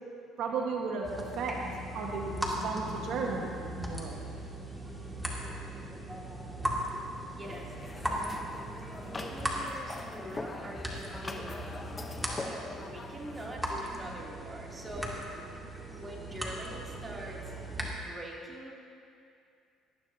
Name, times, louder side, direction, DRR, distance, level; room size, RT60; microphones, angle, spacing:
voice 1, 0.4-1.1 1.3-1.6 1.9-4.2, right 5 dB, 70° right, 0 dB, 1.5 m, -34 dB
sound 1, 1.0-17.9, equal, 5° right, 2.2 m, -38 dB
voice 2, 7.2-8.6 8.9-11.6 12.1-15.2 15.9-17.5 18.0-18.7, right 1 dB, 25° right, -3 dB, 2.9 m, -44 dB
sound 2, 7.4-13.5, left 3 dB, 25° left, 1.0 m, -43 dB
19.0 x 13.0 x 2.9 m, 2.4 s
cardioid pair, 95°, 0 cm